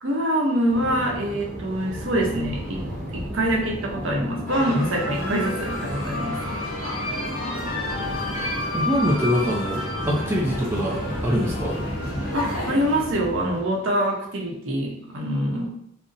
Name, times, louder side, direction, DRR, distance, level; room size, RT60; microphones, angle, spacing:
voice 1, 0.0-2.8 3.1-6.6 12.3-15.7, right 1 dB, 80° right, -1 dB, 0.7 m, -25 dB
sound 1, 0.7-13.6, equal, 40° right, 0.8 m, -33 dB
sound 2, 4.5-13.0, left 2 dB, 45° left, 0.8 m, -31 dB
voice 2, 8.7-11.8, equal, 10° right, -4 dB, 0.4 m, -24 dB
2.6 x 2.0 x 3.7 m, 0.72 s
head